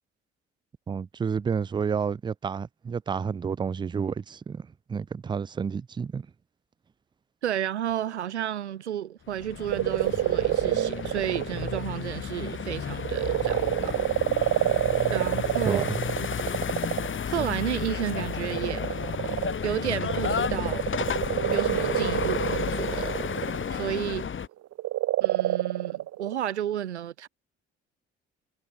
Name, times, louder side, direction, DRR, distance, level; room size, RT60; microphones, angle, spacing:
voice 1, 0.9-6.3 15.6-16.0, right 6 dB, 15° right, 0.3 m, -30 dB
voice 2, 7.4-14.0 15.1-15.9 16.2-16.3 17.3-18.9 19.6-20.9 21.5-23.2 23.7-24.3 25.2-27.3, right 10 dB, 90° right, 0.6 m, -32 dB
sound 1, 9.3-24.5, left 7 dB, 35° left, 1.5 m, -32 dB
sound 2, 9.7-11.8 12.3-17.2 18.0-24.2 24.7-26.3, right 14 dB, 50° right, 0.8 m, -28 dB
figure-of-eight pair, 45°, 33 cm